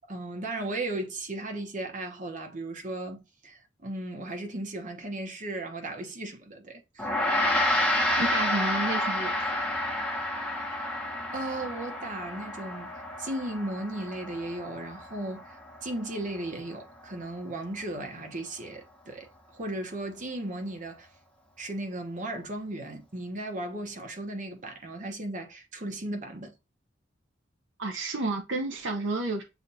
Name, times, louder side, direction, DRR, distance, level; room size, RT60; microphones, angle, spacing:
voice 1, 0.1-7.1 11.3-12.9 13.2-21.1 21.6-26.5, right 1 dB, 45° right, 1.0 m, -36 dB
Gong, 7.0-16.5, left 1 dB, 5° left, 1.0 m, -30 dB
voice 2, 8.2-9.3 27.8-29.4, right 2 dB, 75° right, 0.8 m, -30 dB
7.1 x 2.5 x 2.8 m
head